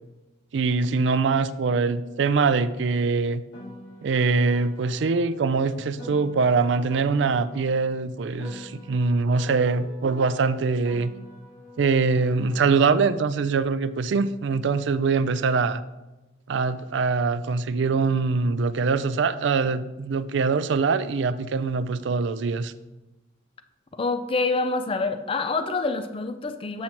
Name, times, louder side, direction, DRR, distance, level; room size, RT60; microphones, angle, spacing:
voice 1, 0.5-3.4 4.0-11.1 11.8-15.8 16.5-22.7, right 4 dB, 65° right, 14 dB, 0.4 m, -23 dB
Piano, 3.5-8.0 8.4-13.0, left 1 dB, 85° left, 2.4 m, -45 dB
voice 2, 23.9-26.8, left 3 dB, 30° left, 9 dB, 0.4 m, -26 dB
7.7 x 7.2 x 2.9 m, 1.0 s
head